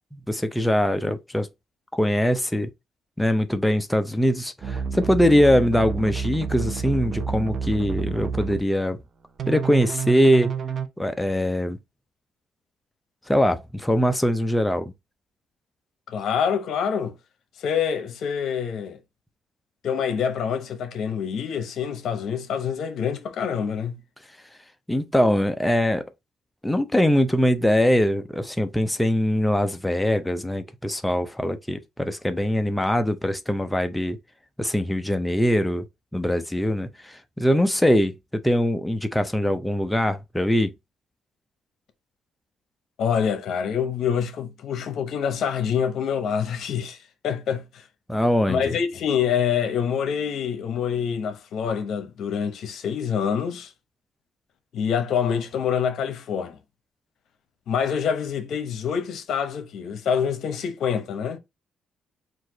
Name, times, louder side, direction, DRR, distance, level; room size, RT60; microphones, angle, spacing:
voice 1, 0.1-1.5 1.9-2.7 3.2-9.0 9.5-10.5 11.0-11.8 13.3-14.9 24.9-26.1 26.6-34.2 34.6-35.8 36.1-38.1 38.4-40.7 48.1-48.7, equal, 5° left, 0.5 m, -22 dB
sound 1, 4.6-8.6 9.4-10.9, right 6 dB, 55° right, 0.7 m, -29 dB
voice 2, 16.1-17.1 17.6-19.0 19.8-24.0 43.0-47.0 47.2-47.8 48.5-53.7 54.7-56.6 57.7-61.4, left 7 dB, 70° left, 0.9 m, -26 dB
4.5 x 2.5 x 3.8 m
cardioid pair, 90°, 0 cm